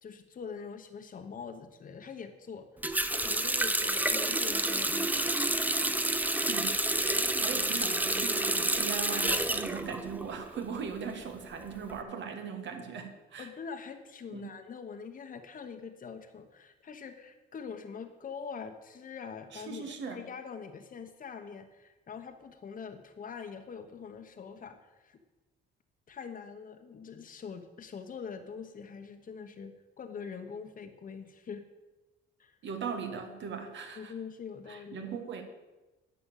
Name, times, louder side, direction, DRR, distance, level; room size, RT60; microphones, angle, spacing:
voice 1, 0.0-5.4 7.3-7.5 13.4-25.2 26.1-31.6 32.4-32.6 34.0-35.2, left 6 dB, 45° left, 6 dB, 1.0 m, -44 dB
Water tap faucet, 2.8-10.6 10.9-11.9, right 1 dB, 10° right, 0.6 m, -29 dB
voice 2, 6.5-13.5 14.3-14.5 19.5-20.2 32.6-34.1 34.7-35.4, right 6 dB, 65° right, 5 dB, 1.7 m, -39 dB
10.0 x 6.8 x 7.3 m, 1.1 s
cardioid pair, 90°, 20 cm